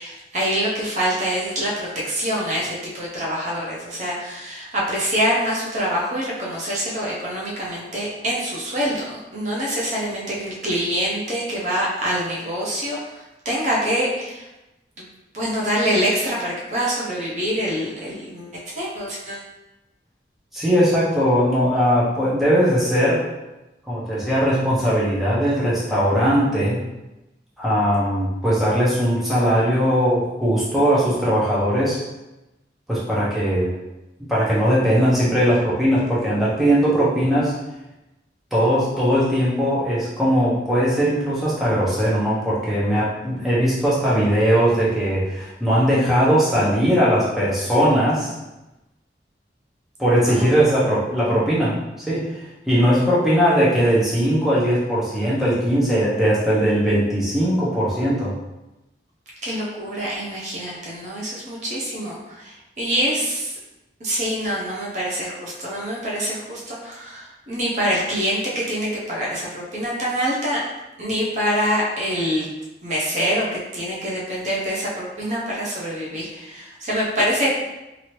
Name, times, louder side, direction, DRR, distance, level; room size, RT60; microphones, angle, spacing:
voice 1, 0.0-14.5 15.3-19.5 50.2-50.5 59.4-63.5 64.0-70.6 71.0-72.5 72.8-77.5, equal, 40° right, -5 dB, 0.6 m, -25 dB
voice 2, 20.5-23.2 23.9-26.8 27.6-32.0 32.9-33.7 34.3-37.5 38.5-48.3 50.0-51.7 52.1-52.4 52.7-58.3, equal, ahead, -9 dB, 0.7 m, -19 dB
2.9 x 2.6 x 3.0 m, 0.98 s
head